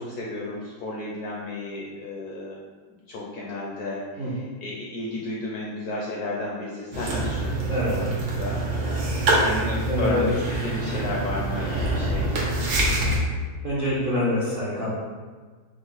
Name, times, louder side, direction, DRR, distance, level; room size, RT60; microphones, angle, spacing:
voice 1, 0.0-2.6 3.1-8.0 8.4-8.7 9.3-10.2 10.6-12.4, left 2 dB, 75° left, -4 dB, 0.9 m, -33 dB
sound 1, 6.9-13.2, right 2 dB, 80° right, 1.6 m, -25 dB
voice 2, 7.7-8.0 9.9-10.3 13.6-14.9, left 1 dB, 60° right, -9 dB, 0.5 m, -25 dB
4.9 x 2.1 x 3.8 m, 1.4 s
omnidirectional pair, 2.1 m